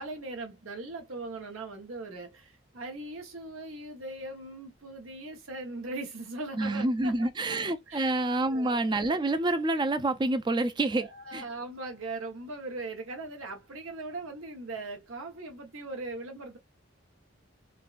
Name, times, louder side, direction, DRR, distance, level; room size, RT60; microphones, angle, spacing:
voice 1, 0.0-7.1 7.5-7.6 7.9-8.2 8.5-8.9 10.9-16.6, right 2 dB, 90° right, 1.1 m, -40 dB
voice 2, 6.6-11.4, right 2 dB, 20° right, 0.4 m, -28 dB
3.8 x 2.3 x 2.5 m
head